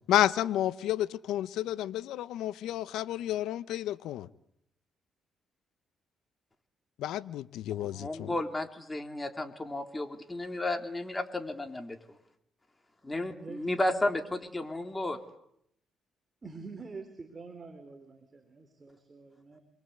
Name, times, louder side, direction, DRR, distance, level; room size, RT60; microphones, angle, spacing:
voice 1, 0.1-4.3 7.0-8.4, left 12 dB, 85° left, 1.0 m, -30 dB
voice 2, 8.0-12.0 13.0-15.2, left 1 dB, 15° left, 3.5 m, -33 dB
voice 3, 13.1-13.7 16.4-19.6, right 4 dB, 30° right, 3.9 m, -46 dB
28.0 x 23.0 x 8.3 m
cardioid pair, 90°, 0 cm